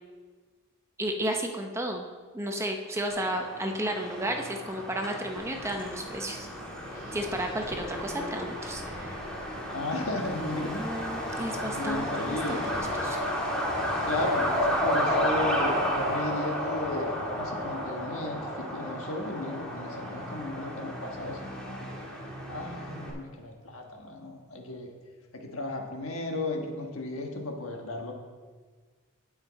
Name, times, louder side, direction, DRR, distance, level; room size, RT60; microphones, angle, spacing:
voice 1, 1.0-2.0 2.3-6.5 7.1-9.2 10.8-13.2, right 1 dB, 10° right, 3 dB, 0.7 m, -33 dB
Truck, 3.1-23.1, equal, 5° left, 1.9 m, -32 dB
Wind, 5.4-16.1, equal, 50° right, 3.3 m, -49 dB
voice 2, 9.6-10.8 11.3-11.5 11.7-12.7 14.0-22.0 22.5-24.9 25.3-28.1, left 2 dB, 65° left, 2 dB, 1.5 m, -35 dB
17.0 x 5.6 x 4.1 m, 1.5 s
head